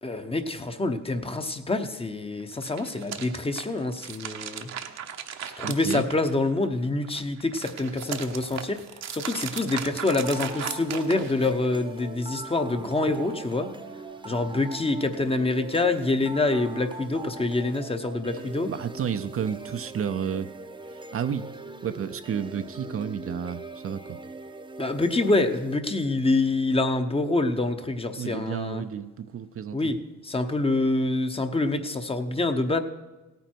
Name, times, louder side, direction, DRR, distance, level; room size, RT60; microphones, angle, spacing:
voice 1, 0.0-4.7 5.6-8.8 9.1-13.7 14.2-18.7 24.8-28.8 29.7-30.0 30.2-32.8, left 2 dB, 20° left, 7 dB, 0.9 m, -26 dB
sound 1, 2.5-6.7 7.0-11.7, right 8 dB, 65° right, 1.0 m, -37 dB
voice 2, 5.6-6.1 18.7-20.5 20.9-21.5 21.8-24.2 28.2-29.9, right 8 dB, 45° right, 10 dB, 0.6 m, -31 dB
sound 2, 10.2-26.2, right 2 dB, 15° right, 0.9 m, -41 dB
16.5 x 9.2 x 4.5 m, 1.1 s
cardioid pair, 90°, 30 cm